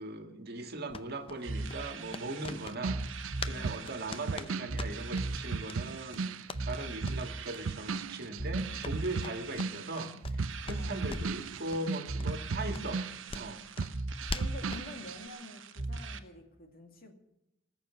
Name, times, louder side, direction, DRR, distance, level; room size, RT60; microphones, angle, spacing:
voice 1, 0.0-3.0 3.4-13.0 13.3-13.6, right 2 dB, 55° right, 6 dB, 1.9 m, -39 dB
sound 1, 0.9-3.6 3.8-5.3 5.7-5.8 6.1-6.6 7.0-7.2 7.5-7.6 7.9-8.1 8.4-10.4 10.7-11.4 11.7-11.9 12.2-12.3 12.7-14.9, left 3 dB, 30° left, 0.7 m, -42 dB
sound 2, 1.4-16.2, right 2 dB, 75° right, 1.2 m, -39 dB
voice 2, 2.4-2.7 3.5-3.9 9.2-9.5 10.7-11.2 14.3-17.1, left 1 dB, 50° left, 4 dB, 2.5 m, -48 dB
sound 3, 2.5-6.8 7.0-13.5 13.8-15.2, right 4 dB, 90° right, 0.5 m, -37 dB
19.5 x 7.1 x 8.4 m, 0.87 s
head